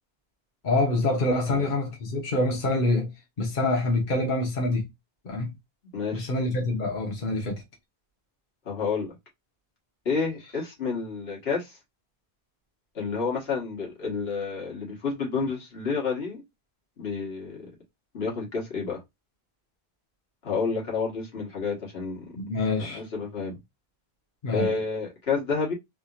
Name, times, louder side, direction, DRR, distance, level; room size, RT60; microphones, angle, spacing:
voice 1, 0.6-3.1 3.4-4.9 5.2-5.5 6.1-7.6 22.4-23.0 24.4-24.7, left 2 dB, 50° left, 1.2 m, -26 dB
voice 2, 5.9-6.3 8.6-9.1 10.0-11.8 12.9-16.4 17.0-17.7 18.1-19.0 20.4-22.2 22.8-23.6 24.5-25.7, left 4 dB, 75° left, 1.7 m, -30 dB
3.5 x 2.8 x 2.4 m
omnidirectional pair, 1.0 m